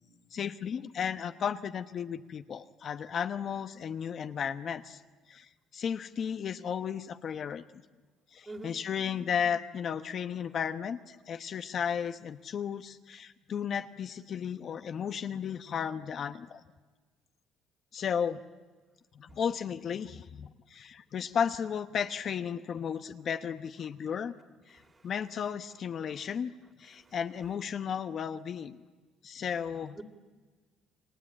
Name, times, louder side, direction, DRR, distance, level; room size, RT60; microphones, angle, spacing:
voice 1, 0.3-5.0 5.3-7.6 8.3-16.6 17.9-18.4 19.1-24.3 24.7-26.5 26.8-28.8 29.2-30.0, left 7 dB, 50° left, 8 dB, 1.1 m, -34 dB
voice 2, 24.7-25.1 26.1-26.3 26.9-27.1 30.0-30.1, right 2 dB, 20° right, 5 dB, 3.0 m, -46 dB
29.0 x 23.0 x 8.8 m, 1.4 s
cardioid pair, 95°, 0 cm